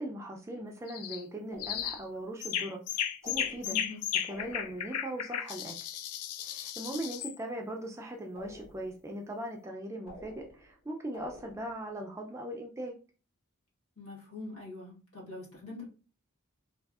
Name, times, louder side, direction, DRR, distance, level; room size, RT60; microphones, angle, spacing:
voice 1, 0.0-3.8 4.3-5.7 6.4-12.9, right 1 dB, 15° right, 1 dB, 0.3 m, -39 dB
sound 1, 0.9-1.2 1.6-2.0 2.4-7.3, left 10 dB, 85° left, 0.3 m, -35 dB
sound 2, 1.5-2.2 3.2-4.0 4.3-5.0 8.4-9.1 10.1-10.8 11.1-11.9, left 2 dB, 50° left, 1.3 m, -51 dB
voice 2, 3.7-4.0 14.0-15.9, left 2 dB, 70° left, -4 dB, 1.4 m, -43 dB
3.4 x 2.3 x 2.3 m, 0.36 s
head